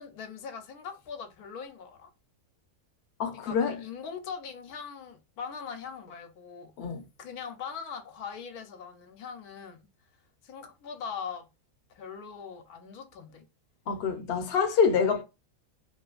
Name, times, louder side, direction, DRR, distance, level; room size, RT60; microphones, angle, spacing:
voice 1, 0.0-2.1 3.4-6.7 7.2-9.8 10.4-11.5 11.9-13.4, left 6 dB, 85° left, 1.1 m, -41 dB
voice 2, 3.2-3.8 6.8-7.0 13.9-15.2, left 6 dB, 55° left, 0.7 m, -26 dB
2.8 x 2.5 x 2.4 m
omnidirectional pair, 1.6 m